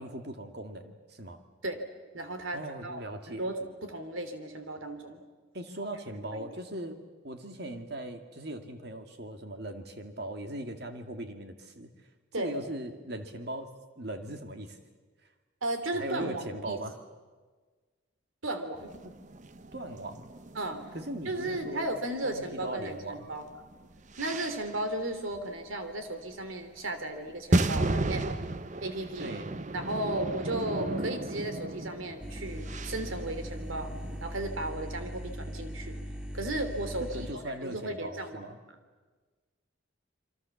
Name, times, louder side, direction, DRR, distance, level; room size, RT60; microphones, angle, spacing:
voice 1, 0.0-1.4 2.5-3.5 5.5-7.0 7.2-11.9 12.3-13.7 14.0-14.8 15.9-16.9 19.0-19.1 19.7-20.2 20.9-21.9 22.2-23.3 29.2-29.5 37.0-38.6, right 1 dB, 55° right, 6 dB, 2.2 m, -39 dB
voice 2, 2.1-5.2 6.3-6.5 12.3-12.5 15.6-16.8 18.4-18.9 20.5-20.9 21.2-23.4 24.2-28.4 28.8-29.3 29.7-33.9 34.2-36.0 36.3-37.0 37.6-38.4, right 1 dB, 85° right, 8 dB, 3.1 m, -35 dB
sound 1, 18.8-22.9 23.2-24.9 25.4-25.5 26.3-26.4 27.4-34.3, right 2 dB, 35° right, 0.8 m, -34 dB
sound 2, 32.2-37.3, equal, 5° right, 1.7 m, -39 dB
28.0 x 24.0 x 7.2 m, 1.4 s
head